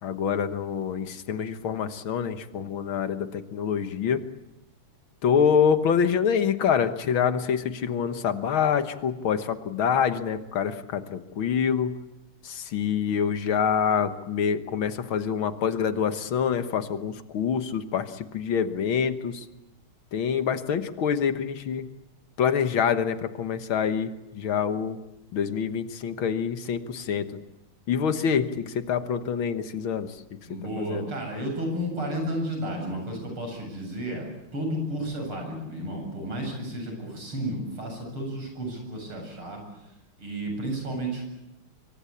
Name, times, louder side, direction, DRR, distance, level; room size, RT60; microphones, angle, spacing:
voice 1, 0.0-4.3 5.2-11.9 12.4-19.5 20.1-21.9 22.4-25.0 25.3-27.4 27.9-30.2 30.8-31.1, left 7 dB, 70° left, 10 dB, 2.1 m, -26 dB
voice 2, 30.5-34.3 34.5-39.6 40.2-41.3, right 1 dB, 85° right, 2 dB, 8.9 m, -32 dB
25.0 x 24.5 x 8.5 m, 0.95 s
omnidirectional pair, 2.3 m